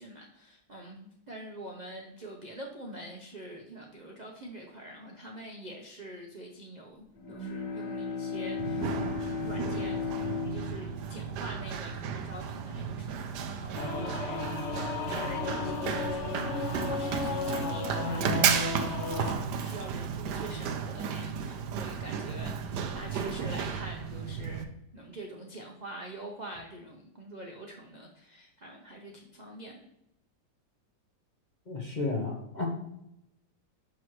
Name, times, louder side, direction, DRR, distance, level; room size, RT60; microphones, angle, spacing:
voice 1, 0.0-9.0 9.4-29.9, right 1 dB, 50° right, 0 dB, 0.5 m, -45 dB
Bowed string instrument, 7.2-12.5, left 5 dB, 50° left, 1.6 m, -36 dB
Run, 8.6-24.6, right 7 dB, 75° right, 1.2 m, -34 dB
Singing / Musical instrument, 13.7-19.4, left 4 dB, 85° left, 0.6 m, -34 dB
voice 2, 31.7-32.7, left 3 dB, 35° left, -1 dB, 0.8 m, -32 dB
6.0 x 6.0 x 3.1 m, 0.82 s
omnidirectional pair, 1.9 m